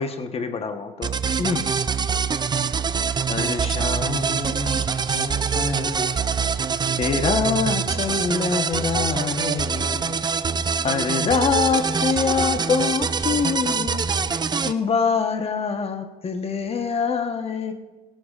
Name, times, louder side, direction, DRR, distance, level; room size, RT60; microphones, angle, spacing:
voice 1, 0.0-1.7 3.3-6.1 7.0-10.2 10.8-14.1 14.7-17.7, left 5 dB, 35° left, 7 dB, 1.1 m, -25 dB
sound 1, 1.0-14.7, right 6 dB, 25° right, 0.5 m, -24 dB
22.5 x 12.0 x 2.5 m, 1.2 s
cardioid pair, 110°, 17 cm